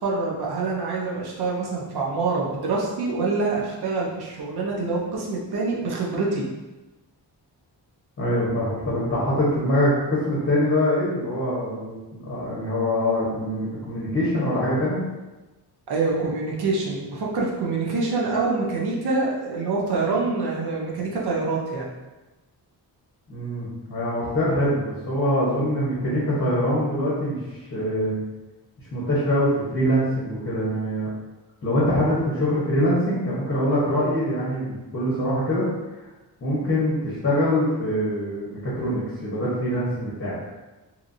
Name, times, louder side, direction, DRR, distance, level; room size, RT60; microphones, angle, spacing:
voice 1, 0.0-6.4 15.9-21.9, right 3 dB, 65° right, -3 dB, 0.8 m, -25 dB
voice 2, 8.2-12.0 12.3-15.0 23.3-28.2 28.9-31.1 31.6-35.6 36.4-40.4, equal, 30° left, -8 dB, 0.9 m, -24 dB
2.9 x 2.5 x 2.5 m, 1.1 s
wide cardioid pair, 100°, 42 cm